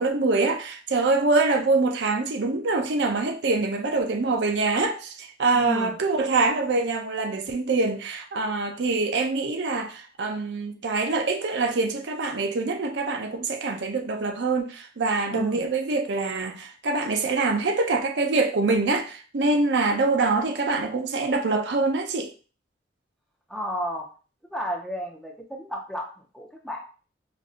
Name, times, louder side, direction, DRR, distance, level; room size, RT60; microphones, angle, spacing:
voice 1, 0.0-22.3, right 3 dB, 75° right, 0.5 m, -25 dB
voice 2, 5.5-6.0 15.3-15.6 23.5-24.1 24.5-26.8, equal, ahead, 0.6 m, -32 dB
5.0 x 2.6 x 2.4 m
head